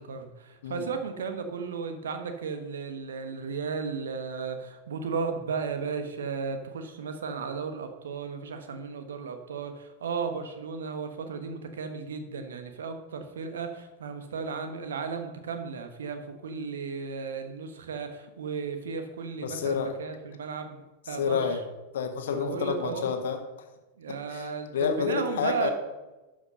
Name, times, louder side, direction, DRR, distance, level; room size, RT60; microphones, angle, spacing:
voice 1, 0.0-20.8 21.1-21.6 22.3-23.1 24.0-25.7, right 5 dB, 65° right, 7 dB, 1.2 m, -35 dB
voice 2, 19.4-19.9 21.2-21.6 21.9-23.4 24.3-24.5 24.7-25.7, left 6 dB, 60° left, 5 dB, 1.4 m, -29 dB
12.5 x 5.3 x 5.4 m, 1.1 s
figure-of-eight pair, 90°, 0 cm